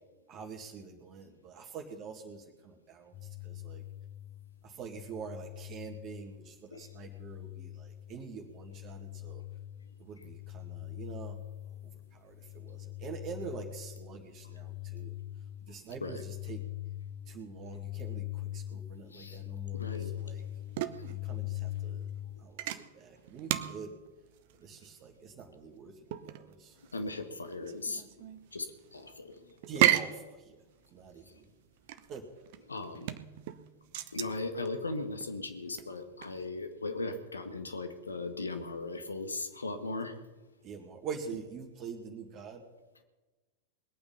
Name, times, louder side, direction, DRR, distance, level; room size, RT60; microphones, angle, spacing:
voice 1, 0.3-3.8 4.6-9.4 10.0-11.4 11.8-15.1 15.6-16.6 17.3-20.4 21.1-22.1 22.4-24.0 24.6-25.9 26.2-26.8 29.7-30.6 30.9-31.5 32.1-32.2 40.6-42.6, right 5 dB, 35° right, 2 dB, 2.0 m, -45 dB
sound 1, 3.1-22.4, left 15 dB, 30° left, 1.6 m, -42 dB
voice 2, 19.7-20.1 26.9-28.0 28.5-29.3 29.9-30.0 32.7-33.1 34.1-40.1, left 3 dB, 75° left, 7 dB, 1.6 m, -38 dB
sound 2, 19.9-36.5, right 13 dB, 50° right, 0.8 m, -35 dB
21.0 x 8.8 x 5.6 m, 1.2 s
figure-of-eight pair, 90°, 0 cm